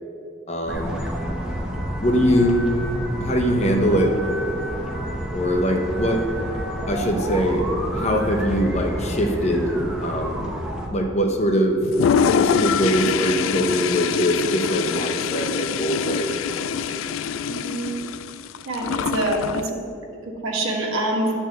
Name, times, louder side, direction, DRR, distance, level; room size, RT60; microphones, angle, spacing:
voice 1, 0.5-0.9 2.0-2.7 3.2-4.1 5.3-6.2 6.9-7.6 7.9-9.7 10.0-10.5 10.9-11.8 12.3-16.4, equal, 35° left, 3 dB, 0.9 m, -22 dB
sound 1, 0.6-10.9, equal, 5° right, 1.0 m, -29 dB
Toilet flush, 11.8-19.7, left 7 dB, 80° left, 0.3 m, -24 dB
voice 2, 17.5-18.0 18.7-19.8 20.4-21.3, right 1 dB, 85° right, -1 dB, 1.6 m, -25 dB
10.0 x 4.5 x 7.8 m, 2.6 s
head